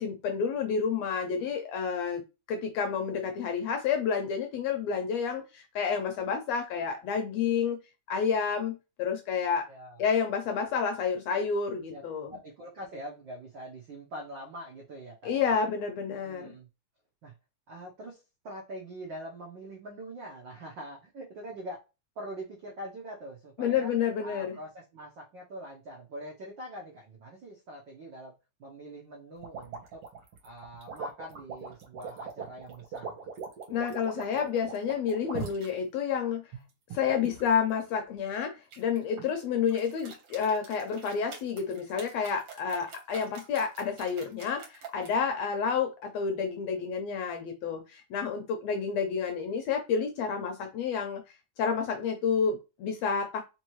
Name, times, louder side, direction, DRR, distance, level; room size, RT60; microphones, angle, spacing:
voice 1, 0.0-2.2 2.5-7.8 8.1-9.7 10.0-12.3 15.2-16.5 23.6-24.6 33.7-36.4 36.9-51.2 51.6-53.4, left 6 dB, 75° left, 4 dB, 1.6 m, -30 dB
voice 2, 9.7-10.0 11.9-12.0 12.3-15.6 16.1-16.7 17.2-17.3 17.7-21.8 22.2-23.9 24.2-28.3 28.6-30.0 30.4-33.3, right 1 dB, 75° right, -2 dB, 1.0 m, -43 dB
sound 1, 29.4-35.7 36.3-37.6 38.7-39.3 39.7-45.1, right 6 dB, 60° right, 1.8 m, -41 dB
4.5 x 2.9 x 3.0 m, 0.27 s
omnidirectional pair, 3.5 m